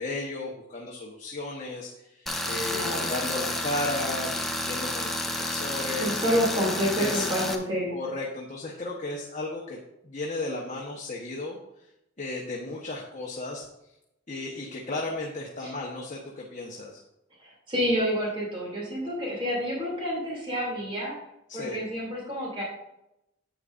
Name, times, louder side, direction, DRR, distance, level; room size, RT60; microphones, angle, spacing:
voice 1, 0.0-6.2 7.0-7.3 7.9-9.8 10.0-11.6 12.2-13.6 14.3-17.0 21.5-21.8, left 2 dB, 35° left, -3 dB, 1.2 m, -34 dB
Tools, 2.3-7.5, left 1 dB, ahead, 0.8 m, -30 dB
voice 2, 2.7-3.1 6.0-7.9 15.6-15.7 17.4-21.1 21.5-22.6, equal, 25° right, -4 dB, 2.9 m, -28 dB
10.5 x 8.5 x 2.6 m, 0.86 s
head